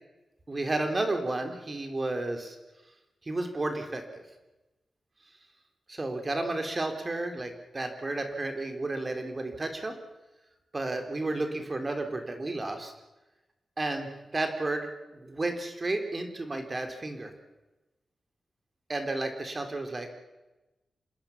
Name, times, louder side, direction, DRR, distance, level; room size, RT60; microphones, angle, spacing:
voice 1, 0.5-2.6 3.2-4.2 5.9-9.9 10.7-12.9 13.8-14.9 15.2-17.3 18.9-20.1, right 2 dB, 30° right, 5 dB, 3.8 m, -32 dB
26.5 x 21.0 x 7.3 m, 1.1 s
wide cardioid pair, 110°, 0 cm